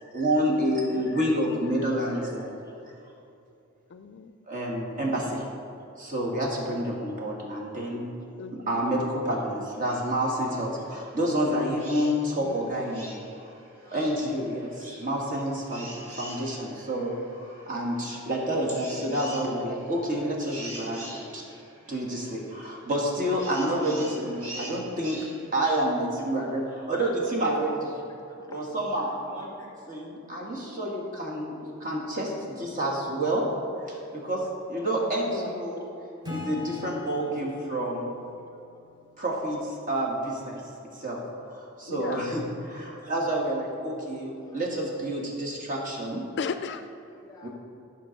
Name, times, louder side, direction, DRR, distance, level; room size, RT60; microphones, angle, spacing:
voice 1, 0.1-2.6 4.5-5.5 6.0-8.2 8.5-13.2 13.8-21.4 21.9-25.3 25.5-27.9 28.5-29.5 29.9-33.5 33.8-35.9 36.3-38.1 39.2-40.6 40.9-41.2 41.5-46.3 47.4-47.5, right 1 dB, 40° right, -2 dB, 1.6 m, -29 dB
voice 2, 0.7-1.3 3.9-4.4 8.4-8.9 12.4-12.8 16.2-16.3 24.2-24.4 35.2-35.5 41.9-42.3 46.4-46.9, left 5 dB, 50° left, 9 dB, 0.4 m, -36 dB
sound 1, 9.8-25.8, right 1 dB, 80° right, 2.3 m, -45 dB
voice 3, 28.1-28.6 29.6-29.7 36.0-36.4 38.9-39.1 44.4-44.6 45.6-45.7 47.1-47.5, left 2 dB, 15° left, 0 dB, 1.1 m, -54 dB
Acoustic guitar / Strum, 36.2-39.8, left 3 dB, 20° right, 1.4 m, -41 dB
11.5 x 5.7 x 5.2 m, 2.7 s
head